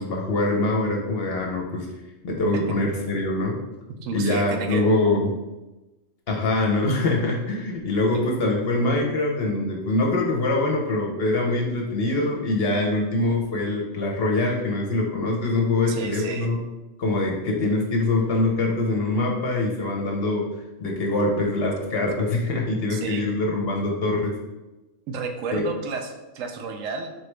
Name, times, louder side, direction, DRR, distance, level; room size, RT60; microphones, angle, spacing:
voice 1, 0.0-1.9 2.2-3.6 4.1-5.3 6.3-16.6 17.0-20.4 20.8-24.3 25.5-25.6, left 2 dB, 55° left, 0 dB, 0.8 m, -24 dB
voice 2, 4.0-4.8 8.1-8.3 15.9-16.5 22.9-23.2 25.1-27.2, right 4 dB, 80° right, 5 dB, 0.9 m, -31 dB
4.2 x 3.0 x 3.2 m, 1.1 s
omnidirectional pair, 1.4 m